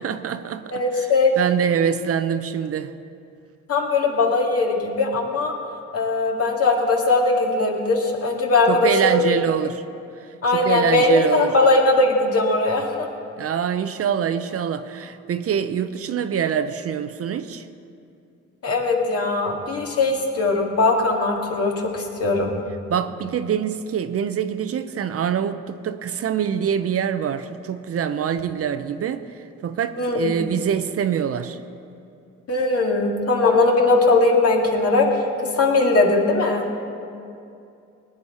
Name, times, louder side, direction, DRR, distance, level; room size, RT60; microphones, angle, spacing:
voice 1, 0.0-0.8 1.4-2.9 8.7-9.8 10.5-11.5 13.4-17.7 22.9-31.6, right 8 dB, 50° right, 11 dB, 0.6 m, -25 dB
voice 2, 0.7-1.3 3.7-5.5 5.9-9.2 10.4-13.1 18.6-22.5 30.0-30.3 32.5-35.2 35.6-36.7, left 3 dB, 50° left, 0 dB, 2.1 m, -20 dB
18.5 x 9.6 x 4.2 m, 2.6 s
cardioid pair, 90°, 30 cm